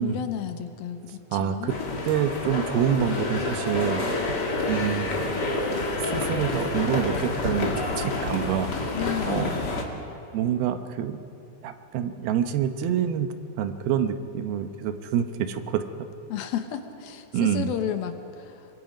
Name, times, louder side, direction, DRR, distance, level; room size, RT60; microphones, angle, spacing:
voice 1, 0.0-1.8 8.9-9.7 16.3-18.7, left 10 dB, 75° left, 7 dB, 2.7 m, -32 dB
voice 2, 1.3-1.7 2.1-5.2 6.0-8.7 9.2-9.5 10.3-11.2 11.6-13.3 13.6-15.8 17.3-17.7, right 9 dB, 80° right, 8 dB, 2.8 m, -27 dB
sound 1, 1.7-9.8, left 2 dB, 35° left, 1.8 m, -28 dB
26.0 x 22.5 x 5.2 m, 2.7 s
omnidirectional pair, 4.5 m